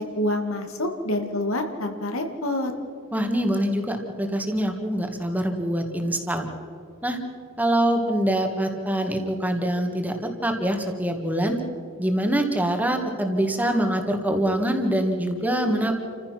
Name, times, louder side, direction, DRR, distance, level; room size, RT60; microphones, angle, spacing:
voice 1, 0.2-2.7, left 1 dB, 85° left, 5 dB, 2.3 m, -27 dB
voice 2, 3.1-6.5 7.0-7.2 7.6-11.6 12.0-15.9, right 1 dB, 10° right, 4 dB, 1.9 m, -24 dB
29.0 x 15.0 x 6.0 m, 2.4 s
head